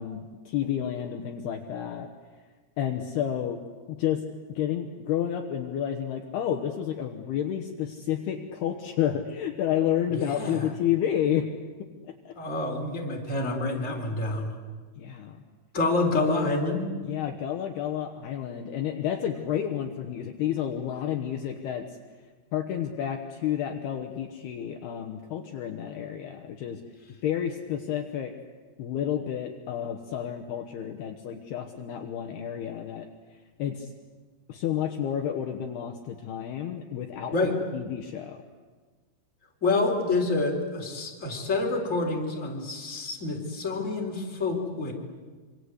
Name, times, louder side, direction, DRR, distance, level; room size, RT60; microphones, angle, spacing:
voice 1, 0.0-2.1 2.8-3.6 3.9-4.2 4.5-11.5 11.8-12.4 15.0-15.4 17.0-21.9 22.5-26.8 27.2-28.3 28.8-33.1 33.6-33.9 34.5-37.4 37.7-38.4, left 10 dB, 70° left, 4 dB, 2.9 m, -30 dB
voice 2, 10.1-10.7 12.4-14.5 15.7-16.8 37.3-37.5 39.6-44.9, left 3 dB, 15° left, 0 dB, 3.8 m, -27 dB
27.0 x 25.5 x 8.1 m, 1.4 s
omnidirectional pair, 5.3 m